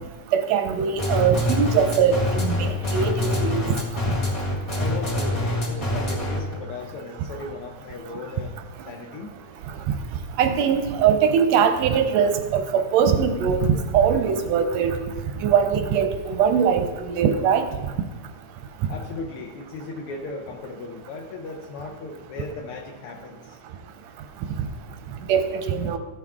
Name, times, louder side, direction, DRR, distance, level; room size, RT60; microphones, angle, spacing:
voice 1, 0.3-3.6 10.4-13.7 13.9-14.9 15.4-17.6 25.3-26.0, right 7 dB, 75° right, 7 dB, 1.6 m, -21 dB
sound 1, 1.0-6.5, left 1 dB, 35° left, 1.9 m, -25 dB
voice 2, 4.8-8.5 8.9-9.4 18.9-23.6, left 3 dB, 75° left, 1 dB, 1.3 m, -36 dB
15.0 x 6.0 x 3.6 m, 1.3 s
omnidirectional pair, 3.5 m